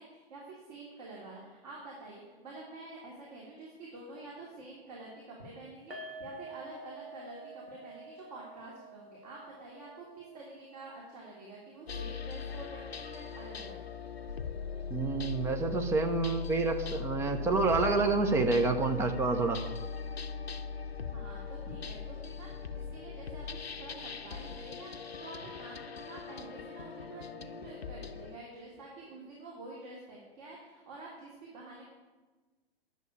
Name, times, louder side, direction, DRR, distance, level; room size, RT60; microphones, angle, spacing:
voice 1, 0.0-13.8 21.1-31.8, right 2 dB, 40° right, -4 dB, 3.0 m, -48 dB
sound 1, 5.9-13.1 13.4-13.6 13.9-14.0, right 2 dB, 85° right, 3.2 m, -50 dB
sound 2, 11.9-28.4, left 6 dB, 80° left, 0.8 m, -40 dB
voice 2, 14.9-19.6, right 3 dB, 10° right, 5 dB, 0.7 m, -28 dB
10.5 x 7.0 x 8.8 m, 1.3 s
figure-of-eight pair, 120°, 31 cm